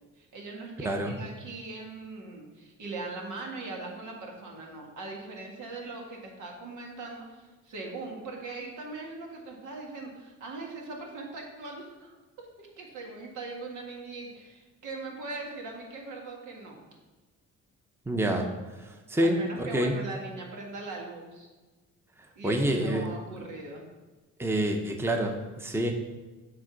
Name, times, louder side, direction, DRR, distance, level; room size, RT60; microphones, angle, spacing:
voice 1, 0.2-16.8 19.2-21.5 22.4-23.9, right 3 dB, 80° right, 0 dB, 1.7 m, -40 dB
voice 2, 0.8-1.2 18.1-18.5 18.8-19.9 22.4-23.1 24.4-25.9, right 1 dB, 10° right, 3 dB, 0.8 m, -27 dB
7.7 x 3.7 x 6.0 m, 1.2 s
cardioid pair, 90°, 30 cm